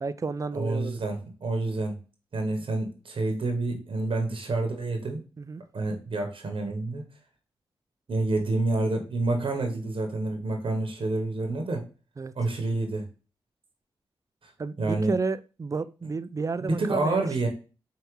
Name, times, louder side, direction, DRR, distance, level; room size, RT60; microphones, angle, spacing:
voice 1, 0.0-1.0 5.4-5.6 12.2-12.3 14.6-17.3, right 4 dB, 35° right, 14 dB, 0.4 m, -31 dB
voice 2, 0.5-2.0 2.3-5.2 5.7-7.0 8.1-11.9 12.4-13.1 14.4-14.5 14.8-15.1 16.6-17.5, right 2 dB, 60° right, 3 dB, 0.9 m, -28 dB
4.7 x 2.8 x 3.0 m, 0.34 s
cardioid pair, 50°, 10 cm